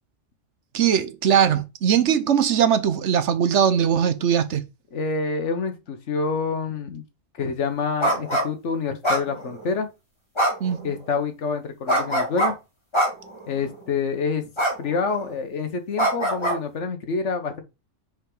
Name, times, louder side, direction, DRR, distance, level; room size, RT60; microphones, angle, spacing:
voice 1, 0.7-4.6 10.6-10.9, right 8 dB, 70° right, 1.0 m, -20 dB
voice 2, 4.9-7.0 7.4-9.9 10.8-12.5 13.5-14.5 14.8-17.6, left 4 dB, 65° left, 1.4 m, -27 dB
sound 1, 8.0-8.5 9.0-9.7 10.4-10.8 11.9-12.5 12.9-13.4 14.6-14.8 15.1-15.3 16.0-16.6, right 1 dB, 20° left, 2.2 m, -22 dB
5.3 x 4.9 x 3.9 m
omnidirectional pair, 1.3 m